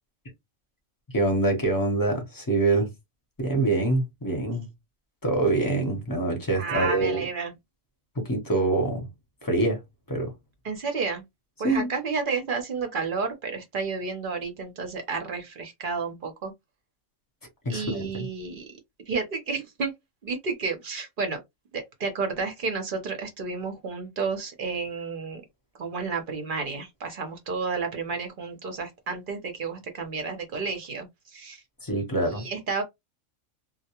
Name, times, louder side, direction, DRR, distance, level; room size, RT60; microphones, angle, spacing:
voice 1, 1.1-2.9 3.4-4.7 5.2-7.2 8.2-9.1 9.4-9.8 10.1-10.3 11.6-11.9 17.6-18.3 31.8-32.4, right 2 dB, 20° left, 0.6 m, -25 dB
voice 2, 6.6-7.5 10.6-11.2 11.6-16.5 17.7-18.6 19.1-19.9 20.2-21.4 21.7-25.4 25.8-31.6 32.3-32.8, right 4 dB, 50° right, 0.6 m, -31 dB
2.2 x 2.1 x 2.8 m
omnidirectional pair, 1.4 m